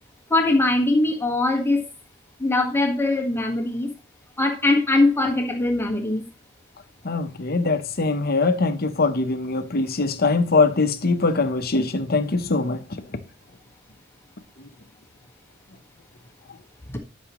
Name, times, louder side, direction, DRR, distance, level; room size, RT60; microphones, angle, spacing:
voice 1, 0.3-1.8 2.4-3.9 4.4-6.2 16.9-17.0, left 2 dB, 10° left, 1.5 m, -21 dB
voice 2, 7.0-12.9, left 3 dB, 50° left, 0.9 m, -22 dB
12.5 x 6.1 x 3.1 m
head